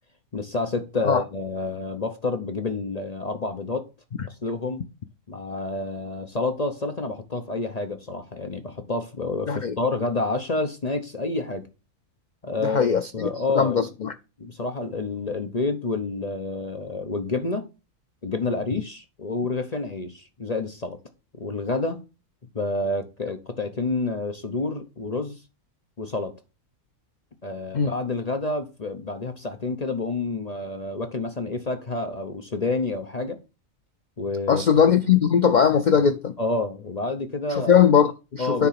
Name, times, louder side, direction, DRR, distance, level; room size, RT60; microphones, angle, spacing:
voice 1, 0.3-3.9 4.4-4.8 5.3-11.7 12.4-13.9 14.4-17.6 18.2-21.0 21.3-22.0 22.5-25.4 26.0-26.3 27.4-33.4 34.2-34.6 36.4-37.8 38.4-38.7, left 3 dB, 35° left, 0.8 m, -29 dB
voice 2, 12.6-13.3 13.6-14.1 27.7-27.9 34.5-36.4 37.5-38.7, left 7 dB, 70° left, 0.4 m, -20 dB
9.6 x 3.7 x 5.7 m
omnidirectional pair, 1.4 m